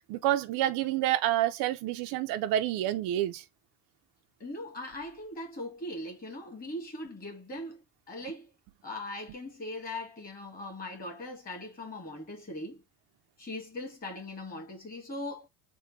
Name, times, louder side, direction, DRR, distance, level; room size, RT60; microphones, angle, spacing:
voice 1, 0.1-3.4, right 13 dB, 65° right, 0.5 m, -28 dB
voice 2, 4.4-8.5 8.8-12.8 13.4-15.5, left 1 dB, 25° left, 1.8 m, -40 dB
3.6 x 2.2 x 4.4 m
cardioid pair, 150°, 39 cm